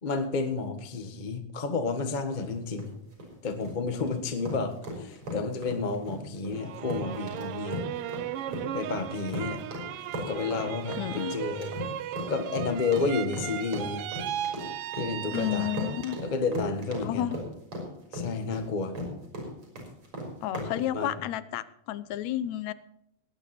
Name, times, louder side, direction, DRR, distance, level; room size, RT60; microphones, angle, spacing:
voice 1, 0.0-2.9 3.4-7.8 8.7-9.6 10.2-11.8 12.3-14.1 15.0-15.7 16.2-17.3 18.1-19.0 20.5-20.7 20.9-21.2, left 4 dB, 40° left, 7 dB, 0.6 m, -31 dB
sound 1, 2.3-20.7, equal, 50° right, 5.2 m, -37 dB
sound 2, 6.6-16.4 16.8-17.5, right 12 dB, 80° right, 1.3 m, -37 dB
voice 2, 11.0-11.4 15.3-16.2 17.0-17.4 20.4-22.7, left 12 dB, 80° left, 16 dB, 1.9 m, -31 dB
18.5 x 9.4 x 4.2 m, 0.79 s
omnidirectional pair, 3.3 m